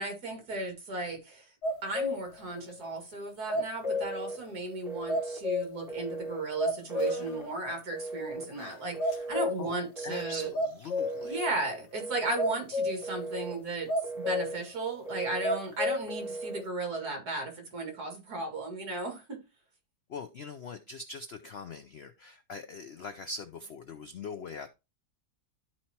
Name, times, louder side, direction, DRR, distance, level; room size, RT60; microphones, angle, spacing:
voice 1, 0.0-1.5 1.8-10.5 11.2-13.9 14.2-19.4, right 2 dB, 65° right, 2.7 m, -35 dB
sound 1, 1.6-2.4 2.7-2.8 3.5-4.3 4.7-4.8 5.1-5.9 6.2-6.3 6.6-7.4 7.8-7.9 8.6-8.7 9.0-9.8 10.5-11.3 12.4-13.1 13.9-14.6 15.0-15.1 15.4-16.1 16.6-16.7, left 2 dB, 80° left, 1.5 m, -31 dB
Telephone, 3.8-4.4 4.9-5.4 5.9-6.4 6.9-7.5 7.9-8.5 8.9-9.5 10.0-10.5 11.0-11.5 12.0-12.6 13.0-13.6 14.0-14.6 15.1-15.6 16.1-16.6, right 3 dB, 5° right, 0.4 m, -38 dB
voice 2, 10.0-11.4 20.1-24.7, left 4 dB, 65° left, 0.6 m, -42 dB
12.5 x 4.4 x 2.9 m
omnidirectional pair, 1.8 m